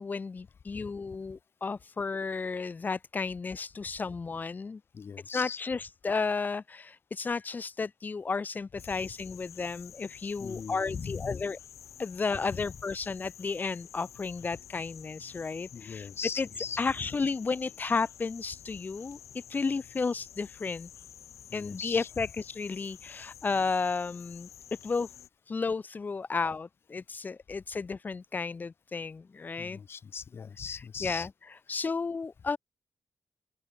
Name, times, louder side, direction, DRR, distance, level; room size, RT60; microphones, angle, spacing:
voice 1, 0.0-4.8 5.3-11.6 12.0-16.1 16.4-16.5 16.8-20.9 21.5-24.5 24.8-25.1 25.5-29.8 30.7-32.6, left 4 dB, 35° left, 2.2 m, -33 dB
voice 2, 4.9-5.6 10.4-11.4 12.6-12.7 15.7-16.8 21.5-22.1 29.6-31.3, left 6 dB, 50° left, 3.6 m, -39 dB
sound 1, 8.8-25.3, left 10 dB, 90° left, 3.5 m, -50 dB
open air
cardioid pair, 100°, 5 cm